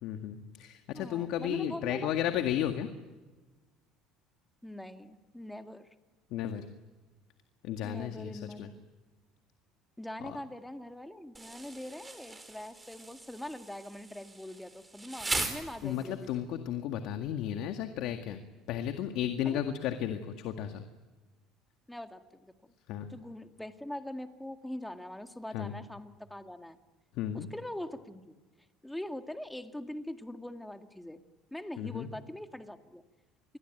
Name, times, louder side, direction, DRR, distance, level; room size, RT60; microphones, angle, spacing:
voice 1, 0.0-2.9 6.3-6.6 7.6-8.3 8.6-8.7 10.2-10.4 15.8-18.4 18.7-20.8 22.9-23.1 25.5-25.7 27.1-27.5 31.8-32.1, left 10 dB, 70° left, 7 dB, 1.9 m, -33 dB
voice 2, 0.9-2.1 4.6-5.9 7.8-8.8 10.0-16.3 19.5-19.6 21.9-22.5 23.1-26.8 27.3-28.4 28.8-31.2 31.5-33.0, left 1 dB, 5° left, 7 dB, 1.9 m, -42 dB
Insect, 11.3-16.3, right 2 dB, 15° right, 4.5 m, -39 dB
28.0 x 22.0 x 9.2 m, 1.3 s
cardioid pair, 115°, 0 cm